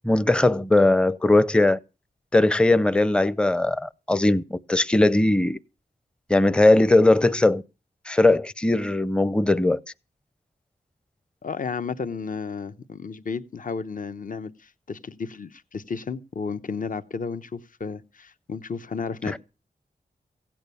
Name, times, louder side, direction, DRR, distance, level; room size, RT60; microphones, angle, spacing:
voice 1, 0.0-1.8 2.3-5.6 6.3-7.6 8.1-9.8 19.3-19.4, left 2 dB, 5° left, 0.6 m, -19 dB
voice 2, 11.4-19.4, left 5 dB, 55° left, 0.9 m, -33 dB
16.5 x 8.9 x 6.9 m
wide cardioid pair, 80°, 17 cm